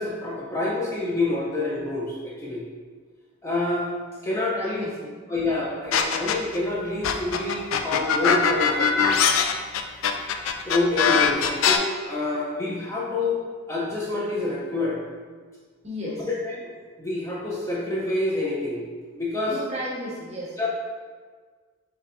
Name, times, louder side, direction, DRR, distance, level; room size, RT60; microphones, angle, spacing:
voice 1, 0.0-2.6 3.4-3.9 4.2-4.9 5.3-9.2 10.6-13.4 13.7-15.0 16.1-16.7 17.0-18.8 19.1-19.6 20.6-20.7, left 2 dB, 15° left, -6 dB, 0.6 m, -27 dB
voice 2, 4.5-5.1 15.8-16.3 19.5-20.7, equal, 30° right, -4 dB, 0.8 m, -34 dB
sound 1, 5.9-6.6 7.0-11.8, left 7 dB, 70° left, 0.3 m, -21 dB
5.5 x 3.2 x 2.6 m, 1.5 s
head